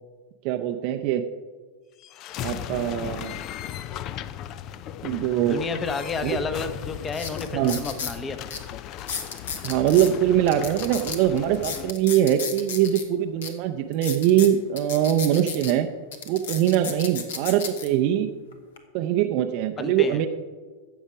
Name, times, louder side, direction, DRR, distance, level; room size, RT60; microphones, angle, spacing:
voice 1, 0.4-1.3 2.4-3.4 5.0-5.6 6.2-6.4 7.5-7.8 9.6-15.9 16.3-18.3 18.9-20.3, right 11 dB, 45° right, 5 dB, 0.6 m, -22 dB
sound 1, 2.0-11.9, left 11 dB, 35° left, 0.4 m, -37 dB
voice 2, 5.5-8.4 19.8-20.2, left 4 dB, 20° left, 10 dB, 1.0 m, -31 dB
sound 2, 7.0-8.2 8.5-8.6 9.0-10.1 10.5-13.0 13.4-13.5 13.9-15.7 16.1-17.9 18.5-18.8, left 6 dB, 60° left, 1.3 m, -34 dB
15.0 x 7.3 x 5.1 m, 1.5 s
figure-of-eight pair, 90°, 0 cm